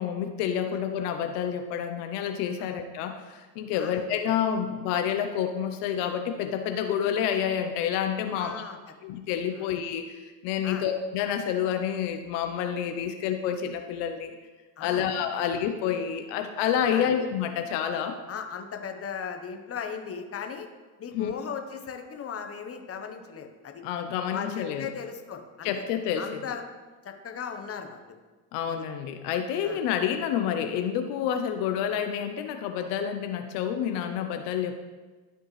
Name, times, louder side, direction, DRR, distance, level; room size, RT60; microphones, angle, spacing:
voice 1, 0.0-8.6 9.0-14.3 14.8-18.2 21.1-21.3 23.8-24.9 25.6-26.2 28.5-34.8, left 8 dB, 75° left, 6 dB, 0.7 m, -29 dB
voice 2, 3.7-4.0 8.4-8.8 9.5-9.7 10.6-10.8 14.8-15.0 16.9-17.1 18.3-20.7 21.0-23.8 24.3-25.8 26.2-26.6 27.0-28.1 28.7-28.8 29.6-29.8, left 7 dB, 35° left, 5 dB, 1.0 m, -37 dB
12.5 x 4.5 x 3.2 m, 1.3 s
supercardioid pair, 90°, 41 cm